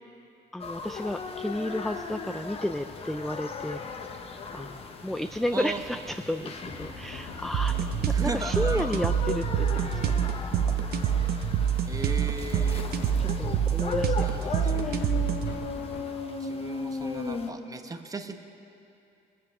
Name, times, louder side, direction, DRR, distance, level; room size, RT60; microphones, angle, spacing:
voice 1, 0.5-4.2 4.5-10.0 13.2-15.1, left 1 dB, ahead, 8 dB, 0.3 m, -33 dB
sound 1, 0.6-17.5, left 4 dB, 35° left, 1.1 m, -37 dB
voice 2, 5.5-6.0 8.1-9.1 11.9-12.8 14.2-15.0 16.4-18.4, right 3 dB, 20° right, 6 dB, 1.0 m, -37 dB
sound 2, 6.6-16.0, left 3 dB, 80° left, 2.2 m, -43 dB
sound 3, 7.5-15.5, right 8 dB, 65° right, 0.9 m, -26 dB
21.0 x 7.6 x 6.6 m, 2.6 s
cardioid pair, 110°, 17 cm